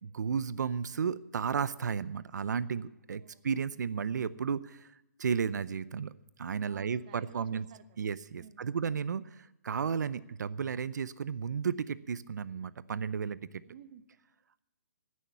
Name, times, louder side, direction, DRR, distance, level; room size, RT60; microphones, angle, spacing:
voice 1, 0.0-4.9 5.2-6.1 6.4-7.6 8.0-13.6, right 6 dB, 85° right, 17 dB, 0.6 m, -33 dB
voice 2, 3.1-3.4 6.7-8.1 8.4-8.8 13.7-14.1, right 10 dB, 30° right, 11 dB, 0.6 m, -54 dB
14.5 x 6.4 x 9.3 m, 0.91 s
hypercardioid pair, 165°, 9 cm